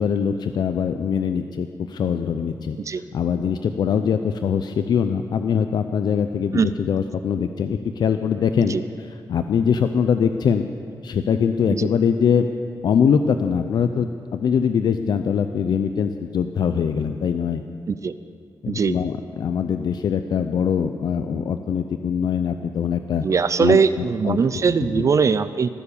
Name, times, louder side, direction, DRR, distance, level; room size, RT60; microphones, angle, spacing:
voice 1, 0.0-2.8 3.1-10.7 11.0-12.5 12.8-17.6 18.6-23.3 23.6-25.1, left 7 dB, 75° left, 8 dB, 0.5 m, -22 dB
voice 2, 18.7-19.0 23.2-25.7, right 5 dB, 45° right, 14 dB, 0.4 m, -20 dB
20.0 x 7.0 x 8.4 m, 2.2 s
wide cardioid pair, 105°, 7 cm